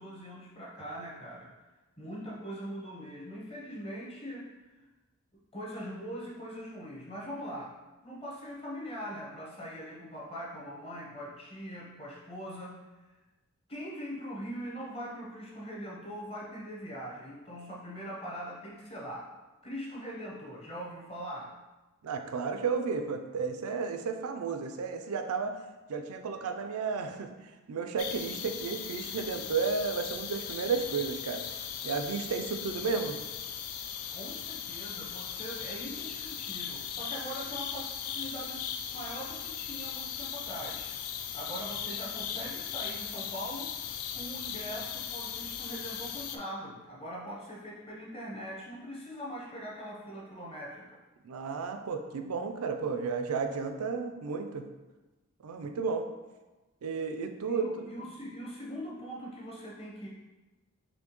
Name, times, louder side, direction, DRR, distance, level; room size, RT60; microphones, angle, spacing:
voice 1, 0.0-1.5 2.0-4.8 5.5-12.8 13.7-19.3 19.6-21.6 34.1-38.6 38.9-40.9 41.3-43.7 44.1-51.0 57.4-60.1, equal, 25° left, -4 dB, 0.7 m, -42 dB
voice 2, 22.0-25.6 25.9-31.4 31.8-33.2 51.2-54.7 55.4-56.0 56.8-57.6, right 5 dB, 80° right, 6 dB, 0.4 m, -33 dB
sound 1, 28.0-46.4, left 8 dB, 80° left, 0.4 m, -38 dB
4.2 x 3.1 x 3.0 m, 1.2 s
head